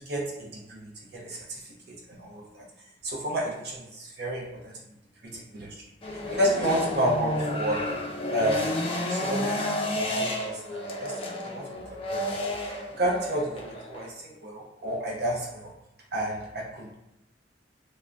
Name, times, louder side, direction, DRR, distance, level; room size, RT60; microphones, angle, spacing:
voice 1, 0.0-1.6 1.9-2.6 3.0-4.7 5.2-5.8 6.3-9.6 9.9-11.2 11.5-12.3 12.7-15.7 16.1-16.9, right 1 dB, 60° right, -2 dB, 0.6 m, -31 dB
sound 1, 6.0-14.1, left 1 dB, 30° left, 0.4 m, -31 dB
2.4 x 2.0 x 3.2 m, 0.92 s
head